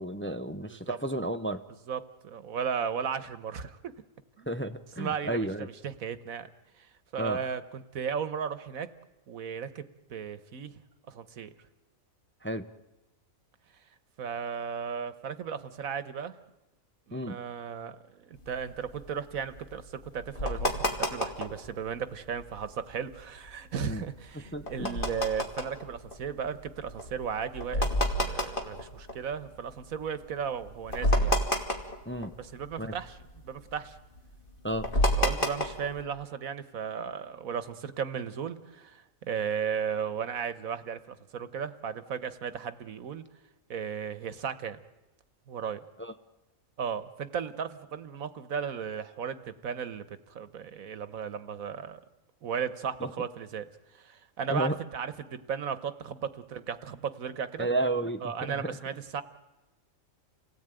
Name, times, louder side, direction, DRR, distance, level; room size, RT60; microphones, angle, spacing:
voice 1, 0.0-1.6 4.5-5.7 7.2-7.4 12.4-12.7 17.1-17.4 23.8-24.0 24.3-25.0 32.1-32.3 32.8-32.9 34.6-34.9 46.0-46.1 53.0-53.1 54.5-54.7 57.6-58.8, right 1 dB, 10° left, 9 dB, 0.7 m, -32 dB
voice 2, 1.9-3.9 4.4-4.5 5.0-6.5 6.8-8.9 9.3-9.8 10.1-10.8 11.1-11.5 14.2-16.4 17.1-27.9 28.2-31.4 32.4-33.2 33.4-34.0 35.2-43.2 43.7-44.8 45.5-45.8 46.8-52.0 52.4-53.7 53.9-57.7 58.2-59.2, right 7 dB, 90° right, 12 dB, 1.6 m, -35 dB
sound 1, 18.4-21.7 22.1-22.7 23.1-29.8 30.2-30.3 30.6-32.7 33.0-36.0, equal, 40° left, 2.9 m, -30 dB
29.0 x 18.0 x 9.1 m, 1.0 s
omnidirectional pair, 1.4 m